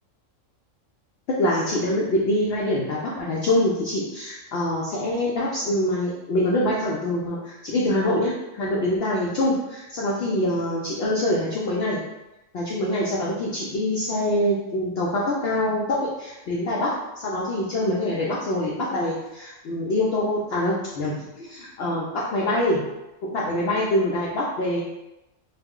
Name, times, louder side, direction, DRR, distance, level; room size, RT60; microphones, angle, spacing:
voice 1, 1.4-12.0 12.5-22.8 23.3-24.8, left 1 dB, 65° left, -5 dB, 0.7 m, -25 dB
2.4 x 2.0 x 3.5 m, 0.95 s
omnidirectional pair, 1.4 m